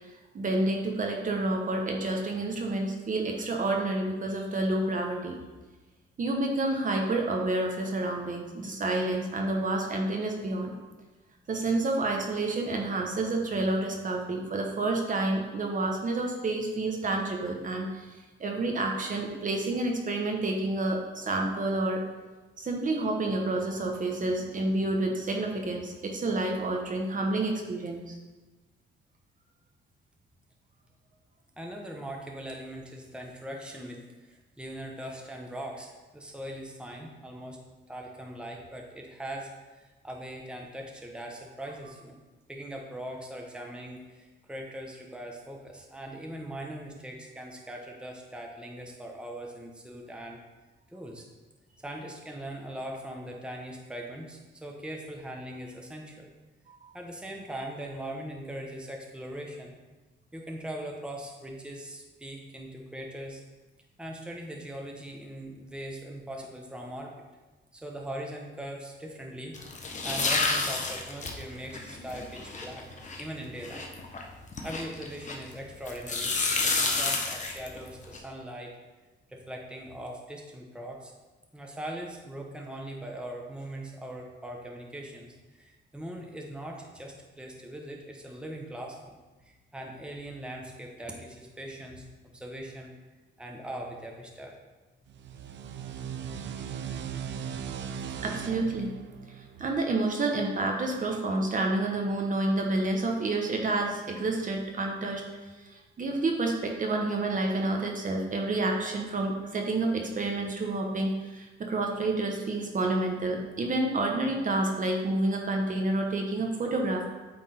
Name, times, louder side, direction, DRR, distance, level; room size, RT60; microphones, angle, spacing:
voice 1, 0.3-5.4 6.2-10.7 11.5-18.1 18.4-22.0 22.6-28.2 98.2-98.9 99.6-105.2 105.6-117.0, right 2 dB, 40° right, 2 dB, 1.1 m, -29 dB
voice 2, 31.6-37.6 37.9-42.1 42.5-50.4 50.9-51.2 51.8-56.3 56.9-59.7 60.3-63.4 64.0-67.2 67.7-72.8 73.2-73.9 74.6-76.3 76.6-78.8 79.3-81.1 81.5-92.9 93.4-94.5, right 1 dB, 5° right, 0 dB, 1.1 m, -41 dB
sound 1, 69.5-75.5 75.9-78.2, left 3 dB, 40° left, 1.0 m, -30 dB
sound 2, 95.1-100.4, right 7 dB, 65° right, 0.5 m, -38 dB
8.6 x 3.6 x 4.4 m, 1.2 s
cardioid pair, 90°, 20 cm